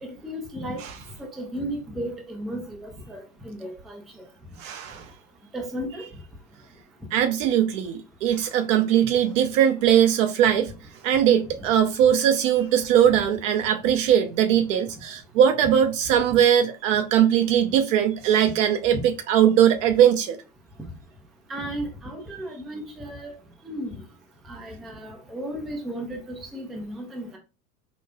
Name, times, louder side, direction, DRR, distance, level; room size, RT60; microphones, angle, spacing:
voice 1, 0.0-0.8 1.2-4.3 5.5-6.0 11.6-11.7 18.9-19.0 21.5-23.3 23.6-24.0 24.5-27.4, equal, ahead, 0.3 m, -34 dB
voice 2, 4.6-5.1 7.1-10.7 11.0-20.4, right 9 dB, 55° right, 0.6 m, -20 dB
5.2 x 2.3 x 2.3 m
hypercardioid pair, 90°, 47 cm